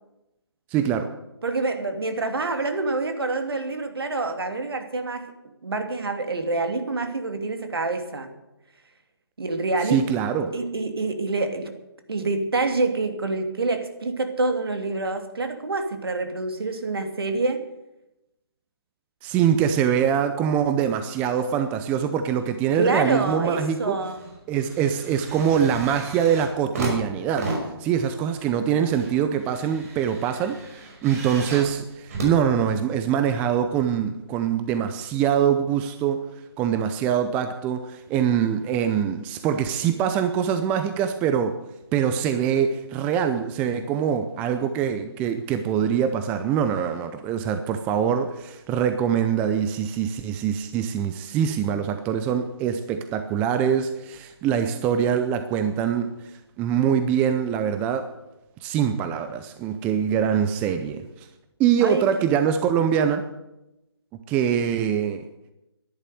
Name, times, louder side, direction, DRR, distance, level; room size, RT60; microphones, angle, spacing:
voice 1, 0.7-1.1 9.8-10.5 19.2-24.0 24.5-27.5 27.8-36.2 36.6-41.6 41.9-56.1 56.6-58.1 58.6-61.3 61.6-63.2 64.3-65.3, right 8 dB, 10° right, 0.5 m, -24 dB
voice 2, 1.4-5.3 5.6-8.3 9.4-10.1 10.4-11.7 12.1-17.6 22.8-24.2 61.8-62.0, right 3 dB, 65° right, 2.6 m, -26 dB
sound 1, 22.7-23.4 23.8-33.1 33.9-34.0, right 2 dB, 35° right, 5.4 m, -35 dB
11.5 x 11.0 x 9.4 m
figure-of-eight pair, 145°, 14 cm